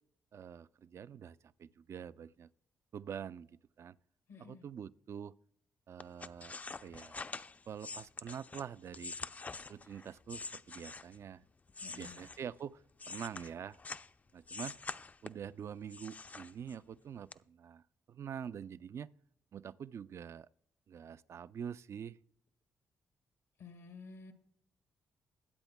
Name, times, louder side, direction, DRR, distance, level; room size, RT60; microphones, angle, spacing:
voice 1, 0.3-2.5 2.9-4.0 4.5-5.3 5.9-6.5 6.8-7.2 7.7-9.1 9.7-11.4 12.0-13.8 14.3-14.8 15.2-19.1 19.5-20.5 20.9-22.2, right 8 dB, 55° right, 0.4 m, -45 dB
voice 2, 4.3-4.7 11.8-12.2 23.6-24.3, left 4 dB, 80° left, 1.2 m, -52 dB
sound 1, 6.0-11.3 11.7-14.1 14.5-15.5 15.9-16.9 17.3-17.4, left 4 dB, 30° left, 0.4 m, -46 dB
21.0 x 8.0 x 2.2 m
cardioid pair, 70°, 6 cm